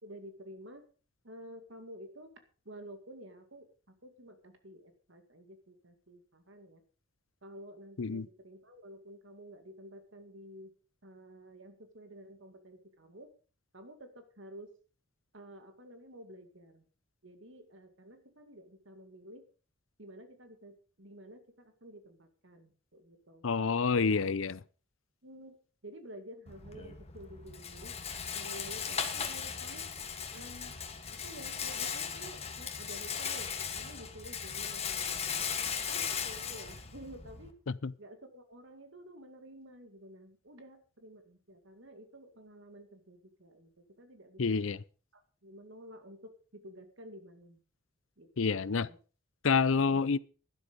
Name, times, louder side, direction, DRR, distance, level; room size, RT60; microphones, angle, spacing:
voice 1, 0.0-0.8 1.2-2.3 2.7-3.7 4.0-6.8 7.4-10.7 11.0-13.3 13.7-14.7 15.3-16.9 17.2-19.4 20.0-23.4 24.0-24.2 25.2-25.6 25.8-28.0 28.3-29.9 30.3-30.7 31.2-35.4 35.9-37.6 38.0-44.6 45.1-47.6 48.2-49.0, right 1 dB, 60° right, 2.2 m, -51 dB
voice 2, 23.4-24.6 37.7-37.9 44.4-44.8 48.4-48.9 49.4-50.2, left 5 dB, 70° left, 0.6 m, -28 dB
Rattle, 26.5-37.5, left 7 dB, 30° left, 1.5 m, -37 dB
12.0 x 12.0 x 5.1 m
head